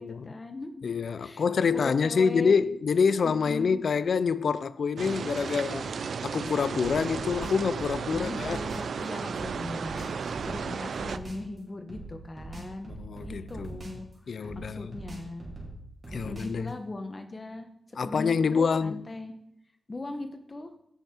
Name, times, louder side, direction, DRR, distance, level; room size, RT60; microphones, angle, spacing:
voice 1, 0.0-0.8 1.2-1.4 1.7-2.5 3.2-3.8 5.5-6.1 8.1-12.9 13.2-14.1 14.5-15.5 16.1-17.7 18.0-19.3 19.9-20.7, left 2 dB, 30° left, 1.1 m, -39 dB
voice 2, 0.8-5.8 6.2-8.6 12.9-13.8 14.3-15.0 16.1-16.7 18.0-19.0, left 5 dB, 65° left, 0.4 m, -26 dB
sound 1, 5.0-11.2, right 6 dB, 75° right, 0.4 m, -34 dB
sound 2, 6.8-8.9 9.3-11.5 11.9-14.1 14.4-16.7, right 2 dB, 35° right, 3.3 m, -42 dB
16.5 x 5.7 x 4.3 m
wide cardioid pair, 140°, 0 cm